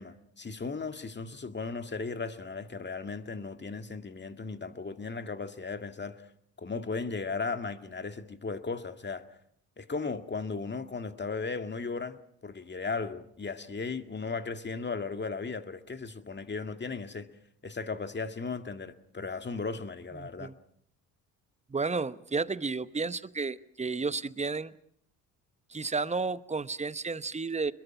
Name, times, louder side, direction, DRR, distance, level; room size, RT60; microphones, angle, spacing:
voice 1, 0.0-6.2 6.6-9.2 9.8-17.3 17.6-20.5, left 4 dB, 25° left, 2.0 m, -36 dB
voice 2, 20.2-20.5 21.7-24.7 25.7-27.7, right 4 dB, 15° right, 1.0 m, -32 dB
26.5 x 22.0 x 6.0 m
hypercardioid pair, 55°, 45 cm